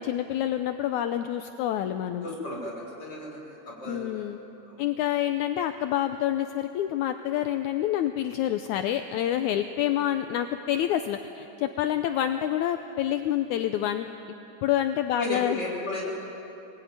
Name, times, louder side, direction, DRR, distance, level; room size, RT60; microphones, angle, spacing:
voice 1, 0.0-2.3 3.9-4.4 4.8-14.1 14.6-15.6, left 11 dB, 75° left, 8 dB, 2.0 m, -27 dB
voice 2, 2.2-4.1 4.7-4.8 15.1-16.1, left 2 dB, 30° left, -3 dB, 6.4 m, -34 dB
24.0 x 20.5 x 9.5 m, 3.0 s
omnidirectional pair, 3.7 m